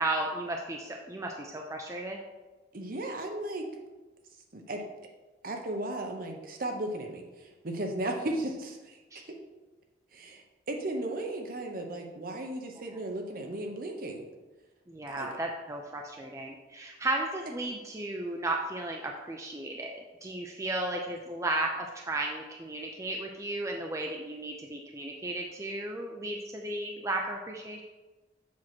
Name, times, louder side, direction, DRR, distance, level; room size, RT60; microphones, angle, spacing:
voice 1, 0.0-2.2 9.1-9.2 14.9-27.8, right 2 dB, 15° right, 1 dB, 0.5 m, -34 dB
voice 2, 2.7-3.7 4.5-4.8 5.4-9.0 9.3-9.4 10.1-14.2 15.1-15.3, right 1 dB, 50° right, 3 dB, 0.9 m, -35 dB
7.4 x 3.0 x 6.0 m, 1.2 s
head